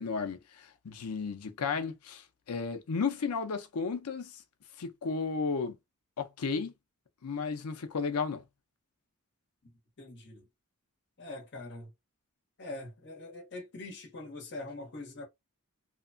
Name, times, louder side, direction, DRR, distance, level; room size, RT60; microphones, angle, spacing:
voice 1, 0.0-4.4 4.8-5.8 6.2-6.7 7.2-8.4, left 5 dB, 80° left, 0.6 m, -33 dB
voice 2, 10.0-10.4 11.2-11.9 12.6-15.3, left 2 dB, 55° left, 1.0 m, -43 dB
2.9 x 2.2 x 2.5 m
head